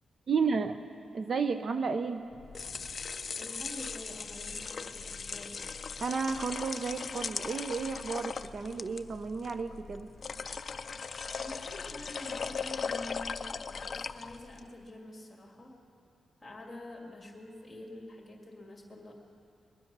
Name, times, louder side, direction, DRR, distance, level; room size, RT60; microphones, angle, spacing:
voice 1, 0.3-0.8 1.1-2.3 6.0-10.1, right 5 dB, 45° right, 9 dB, 0.5 m, -32 dB
sound 1, 2.3-14.7, left 5 dB, 35° left, 0.4 m, -39 dB
voice 2, 3.4-5.6 11.4-15.8 16.4-19.1, left 1 dB, 15° left, 1 dB, 2.1 m, -47 dB
21.5 x 10.5 x 6.0 m, 2.7 s
wide cardioid pair, 160°, 0 cm